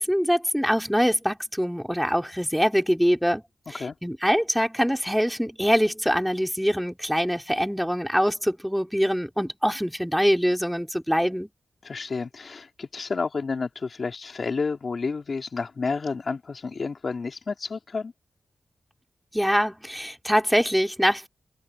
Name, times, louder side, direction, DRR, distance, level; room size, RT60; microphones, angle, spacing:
voice 1, 0.0-3.4 3.7-11.5 19.3-21.3, equal, ahead, 3.1 m, -24 dB
voice 2, 11.8-18.1, left 4 dB, 55° left, 3.2 m, -30 dB
cardioid pair, 75°, 0 cm